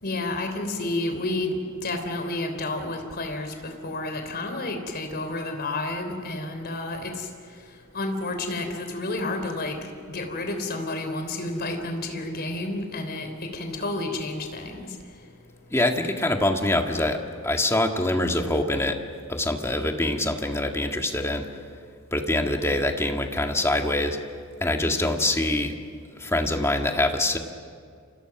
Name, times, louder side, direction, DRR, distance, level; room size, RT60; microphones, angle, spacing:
voice 1, 0.0-7.3 7.9-9.8 10.1-15.0, left 2 dB, 50° left, 5 dB, 3.6 m, -30 dB
voice 2, 15.7-19.0 19.3-21.5 22.1-24.2 24.6-25.8 26.2-27.4, left 1 dB, 10° left, 3 dB, 1.9 m, -24 dB
29.5 x 25.5 x 6.1 m, 2.2 s
head